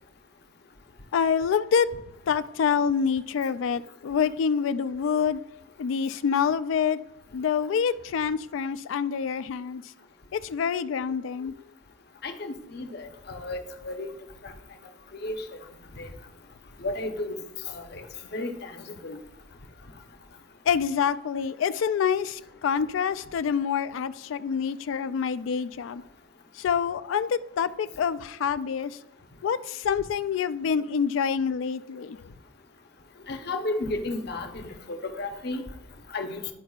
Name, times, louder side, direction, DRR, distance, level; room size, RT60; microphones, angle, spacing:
voice 1, 1.1-5.4 5.8-7.0 7.3-9.8 10.3-11.6 20.7-26.0 26.6-29.0 29.4-32.2, left 7 dB, 75° left, 0.3 m, -26 dB
voice 2, 12.2-14.1 14.4-14.5 15.2-15.4 16.0-16.1 16.8-17.4 17.7-18.0 18.3-19.2 33.3-35.6 36.1-36.4, left 2 dB, 55° left, 0.8 m, -33 dB
12.0 x 4.7 x 2.3 m
head